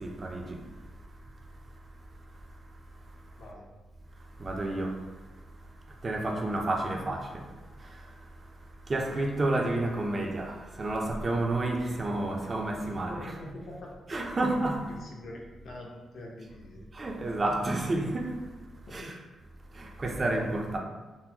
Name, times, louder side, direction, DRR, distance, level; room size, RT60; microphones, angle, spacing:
voice 1, 0.0-0.5 4.4-4.9 6.0-7.3 8.9-13.3 14.1-14.8 16.9-18.3 18.9-19.1 19.8-20.8, right 2 dB, 30° right, 0.4 m, -30 dB
voice 2, 3.4-3.7 6.7-7.1 12.9-13.9 14.9-15.3 15.6-16.9 19.0-19.1, left 1 dB, 65° left, 0.7 m, -45 dB
3.8 x 2.0 x 2.8 m
cardioid pair, 130°, 0 cm